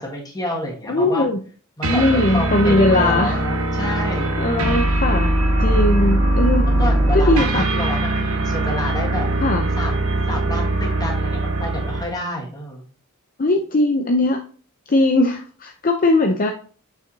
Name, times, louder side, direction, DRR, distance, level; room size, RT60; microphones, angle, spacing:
voice 1, 0.0-1.3 1.8-4.3 6.7-9.3 9.8-12.9, left 1 dB, 20° left, -1 dB, 1.8 m, -29 dB
voice 2, 0.9-1.4 1.9-3.4 3.8-3.9 4.4-5.3 5.6-6.7 7.1-7.7 9.4-9.7 13.4-14.4 14.9-16.5, left 2 dB, 40° left, 4 dB, 0.6 m, -19 dB
sound 1, 1.8-12.2, right 1 dB, 70° right, 1.0 m, -20 dB
6.9 x 5.7 x 2.7 m, 0.42 s
head